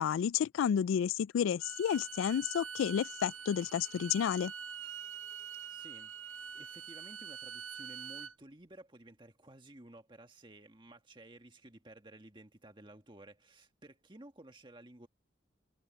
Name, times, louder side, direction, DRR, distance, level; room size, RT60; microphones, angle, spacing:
voice 1, 0.0-4.5, left 8 dB, 90° left, 0.3 m, -31 dB
Bowed string instrument, 1.6-8.3, right 6 dB, 85° right, 1.0 m, -45 dB
voice 2, 5.7-15.1, right 1 dB, 25° right, 1.7 m, -55 dB
head